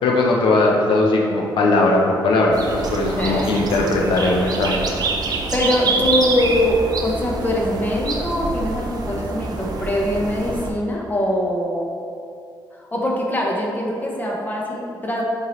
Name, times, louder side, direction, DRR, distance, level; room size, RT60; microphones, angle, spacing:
voice 1, 0.0-4.8, left 2 dB, 85° left, -1 dB, 0.8 m, -18 dB
sound 1, 2.5-10.7, right 3 dB, 50° right, 0.7 m, -26 dB
voice 2, 3.2-3.7 5.5-12.1 12.8-15.2, left 1 dB, 20° left, -2 dB, 1.1 m, -23 dB
7.3 x 4.6 x 3.2 m, 2.4 s
cardioid pair, 105°, 8 cm